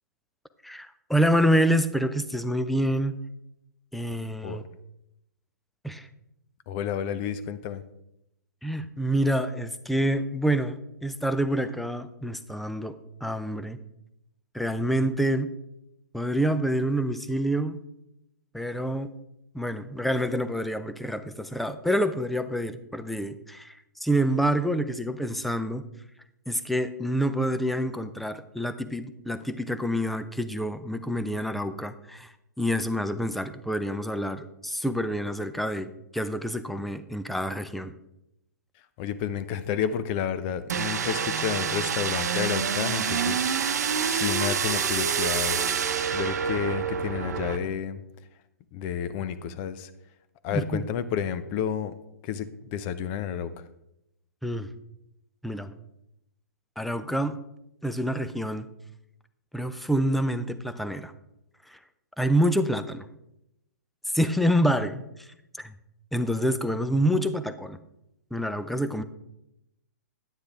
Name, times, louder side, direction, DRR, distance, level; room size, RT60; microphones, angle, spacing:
voice 1, 0.6-3.1 3.9-4.6 5.8-6.1 8.6-13.0 13.2-13.8 14.5-15.5 16.1-17.8 18.5-19.1 19.5-23.7 24.0-25.8 26.5-37.9 50.5-50.8 54.4-54.7 55.4-55.7 56.8-57.4 57.8-58.7 59.5-61.1 61.7-61.8 62.2-63.1 64.1-65.3 65.5-65.7 66.1-67.8 68.3-69.0, equal, ahead, 11 dB, 0.5 m, -27 dB
voice 2, 6.7-7.8 39.0-45.6 46.1-48.0 48.7-49.9 50.4-51.9 52.2-53.6, left 8 dB, 35° left, 13 dB, 0.7 m, -31 dB
sound 1, 40.7-47.6, right 7 dB, 70° right, 0.8 m, -27 dB
9.7 x 9.1 x 3.5 m, 0.84 s
hypercardioid pair, 125°, 9 cm